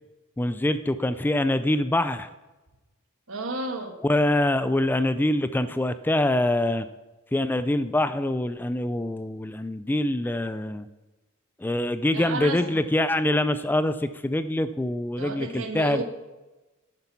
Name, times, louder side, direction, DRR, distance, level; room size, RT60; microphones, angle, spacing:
voice 1, 0.4-2.3 4.0-6.9 7.3-10.9 11.6-16.0, left 1 dB, 10° left, 12 dB, 0.3 m, -24 dB
voice 2, 3.3-3.9 12.1-12.9 15.2-16.0, right 2 dB, 80° right, 5 dB, 1.4 m, -32 dB
9.9 x 8.0 x 5.9 m, 1.1 s
head